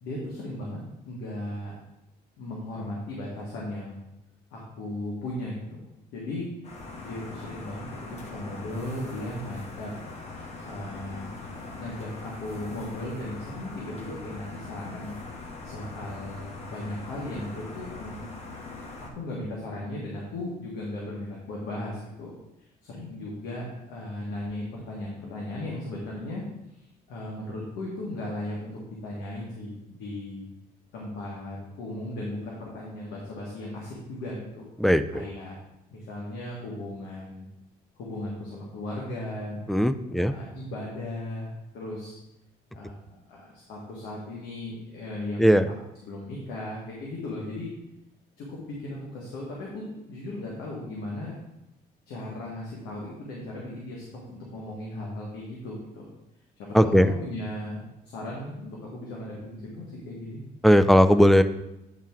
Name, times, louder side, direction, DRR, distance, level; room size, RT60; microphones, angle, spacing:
voice 1, 0.0-0.8 1.0-1.7 2.4-4.0 4.5-5.8 6.1-6.5 7.0-9.9 10.6-18.3 19.2-22.3 22.6-26.4 26.7-26.8 27.1-30.4 30.9-34.6 35.1-35.6 35.9-37.5 38.0-39.6 40.1-42.2 42.7-45.7 46.0-47.7 48.4-51.4 52.1-56.1 56.6-57.8 58.0-60.4, left 1 dB, 85° left, -4 dB, 1.6 m, -36 dB
sound 1, 6.6-19.1, left 3 dB, 40° left, 1.3 m, -41 dB
voice 2, 34.8-35.2 39.7-40.3 45.4-45.7 56.7-57.1 60.6-61.4, equal, ahead, 12 dB, 0.3 m, -18 dB
8.8 x 3.5 x 4.5 m, 0.90 s
cardioid pair, 110°, 17 cm